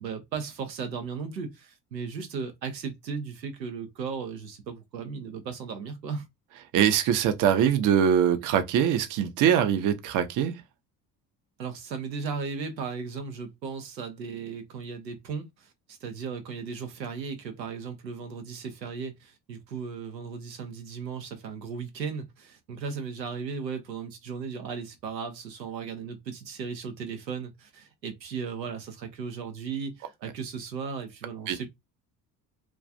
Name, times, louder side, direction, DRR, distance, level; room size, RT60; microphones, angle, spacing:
voice 1, 0.0-6.3 11.6-31.7, right 5 dB, 85° right, 0.6 m, -36 dB
voice 2, 6.7-10.5 31.5-31.6, right 9 dB, 40° right, 0.6 m, -23 dB
2.3 x 2.2 x 2.5 m
figure-of-eight pair, 55°, 49 cm